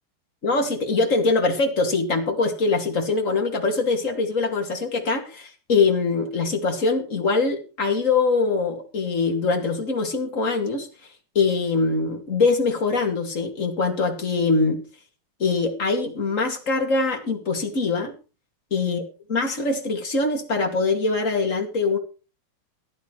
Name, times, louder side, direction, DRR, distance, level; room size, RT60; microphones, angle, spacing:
voice 1, 0.4-10.9 11.3-14.8 15.4-18.2 18.7-19.0 19.3-22.0, left 3 dB, 25° left, 3 dB, 1.9 m, -23 dB
15.0 x 11.0 x 4.6 m, 0.34 s
omnidirectional pair, 4.4 m